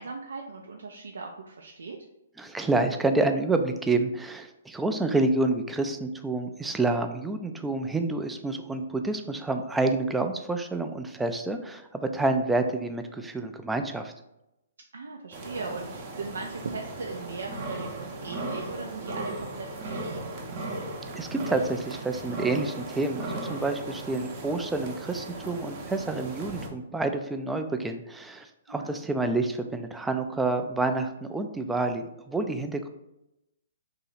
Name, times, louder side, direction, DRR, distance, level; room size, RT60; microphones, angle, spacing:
voice 1, 0.0-2.0 14.9-20.5 28.7-28.9, right 4 dB, 75° right, 1 dB, 0.4 m, -38 dB
voice 2, 2.4-14.1 21.2-32.9, right 2 dB, 5° right, 6 dB, 0.3 m, -28 dB
sound 1, 15.3-26.7, right 2 dB, 40° right, 0.7 m, -37 dB
3.0 x 2.8 x 4.0 m, 0.90 s
hypercardioid pair, 125°, 0 cm